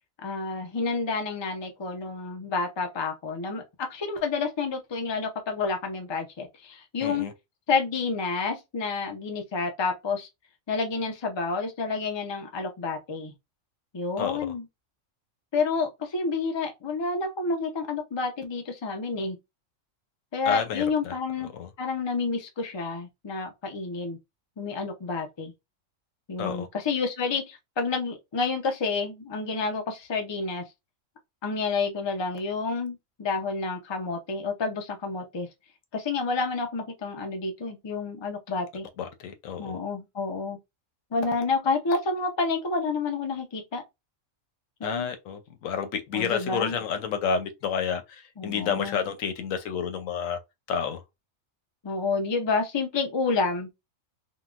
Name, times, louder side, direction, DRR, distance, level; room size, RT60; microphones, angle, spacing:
voice 1, 0.2-7.3 7.7-10.3 10.7-13.3 13.9-14.6 15.5-19.4 20.3-21.5 21.8-24.2 24.6-25.5 26.3-30.6 31.4-35.5 35.9-38.9 39.6-40.6 41.1-43.8 44.8-45.1 46.1-46.8 48.4-49.0 51.8-53.7, left 4 dB, 30° left, 0.5 m, -29 dB
voice 2, 7.0-7.3 14.2-14.4 20.5-21.1 21.5-21.7 26.4-26.7 39.0-39.8 44.8-50.4 50.7-51.0, left 7 dB, 85° left, 1.0 m, -30 dB
3.7 x 2.3 x 2.4 m
omnidirectional pair, 1.3 m